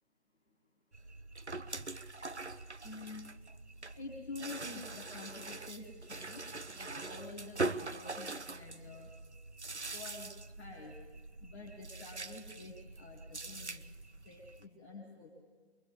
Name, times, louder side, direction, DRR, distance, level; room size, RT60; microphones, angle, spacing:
sound 1, 0.9-14.7, right 3 dB, 90° right, 1.0 m, -43 dB
voice 1, 2.8-3.3 3.9-6.4 6.7-9.1 9.9-10.9 11.4-13.8 14.2-15.3, left 3 dB, ahead, -9 dB, 0.8 m, -48 dB
23.5 x 21.0 x 8.1 m, 1.4 s
figure-of-eight pair, 150°, 33 cm